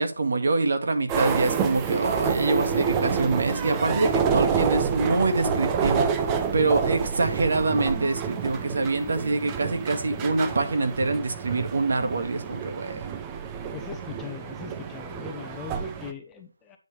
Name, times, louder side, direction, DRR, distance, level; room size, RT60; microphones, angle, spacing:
voice 1, 0.0-13.2, right 3 dB, 55° right, 7 dB, 2.0 m, -25 dB
sound 1, 1.1-16.1, right 6 dB, 15° right, 0.8 m, -28 dB
voice 2, 13.7-16.8, left 6 dB, 10° left, 4 dB, 1.1 m, -39 dB
10.5 x 7.2 x 3.4 m, 0.31 s
figure-of-eight pair, 160°, 0 cm